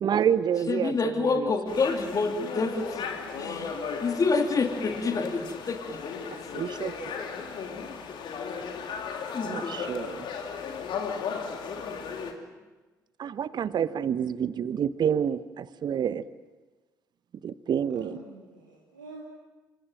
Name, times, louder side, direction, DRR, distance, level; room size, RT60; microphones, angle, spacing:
voice 1, 0.0-1.5 6.5-6.9 9.4-10.3 13.2-16.2 17.4-18.2, right 8 dB, 50° right, 16 dB, 0.9 m, -28 dB
voice 2, 0.7-3.1 3.4-6.1 9.3-9.8, left 4 dB, 40° left, 4 dB, 2.7 m, -28 dB
sound 1, 1.7-12.3, left 6 dB, 55° left, 2.9 m, -36 dB
voice 3, 3.3-3.7 6.2-6.5 17.9-19.2, right 3 dB, 85° right, -4 dB, 2.7 m, -46 dB
27.0 x 26.0 x 7.7 m, 1.2 s
figure-of-eight pair, 45°, 10 cm